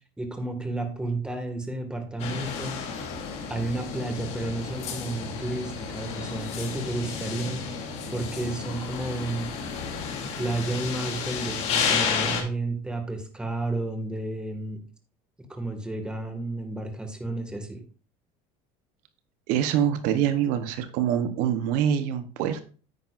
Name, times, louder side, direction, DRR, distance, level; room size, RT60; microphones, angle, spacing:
voice 1, 0.2-2.8 3.5-7.7 8.1-9.5 10.4-14.8 15.5-17.8, right 2 dB, 5° right, 5 dB, 1.8 m, -31 dB
sound 1, 2.2-12.4, left 6 dB, 55° left, 2.8 m, -32 dB
voice 2, 19.5-22.6, right 9 dB, 70° right, 10 dB, 1.0 m, -25 dB
9.4 x 9.3 x 2.5 m, 0.38 s
supercardioid pair, 125°, 14 cm